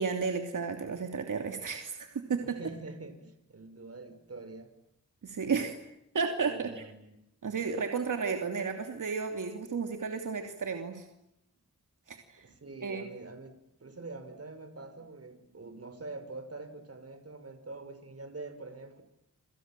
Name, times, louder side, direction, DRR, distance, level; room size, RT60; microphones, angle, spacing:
voice 1, 0.0-2.6 5.2-5.8 6.1-6.8 7.4-11.0 12.1-12.4 12.8-13.1, right 5 dB, 85° right, 4 dB, 3.0 m, -33 dB
voice 2, 2.4-4.7 6.4-7.2 12.4-19.0, right 3 dB, 50° right, 8 dB, 6.0 m, -45 dB
28.5 x 27.5 x 7.7 m, 0.86 s
wide cardioid pair, 80°, 30 cm